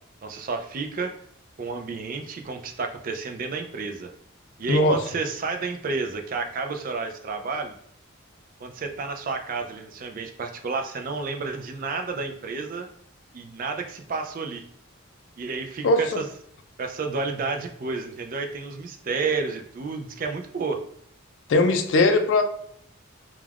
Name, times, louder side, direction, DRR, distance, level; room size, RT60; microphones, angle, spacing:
voice 1, 0.2-1.1 1.6-4.1 4.6-7.7 8.6-12.9 13.3-14.6 15.4-16.3 16.8-20.8, right 4 dB, 40° right, 5 dB, 0.3 m, -31 dB
voice 2, 15.8-16.2 21.5-22.4, left 2 dB, 60° left, 6 dB, 0.4 m, -19 dB
2.3 x 2.2 x 3.2 m, 0.68 s
head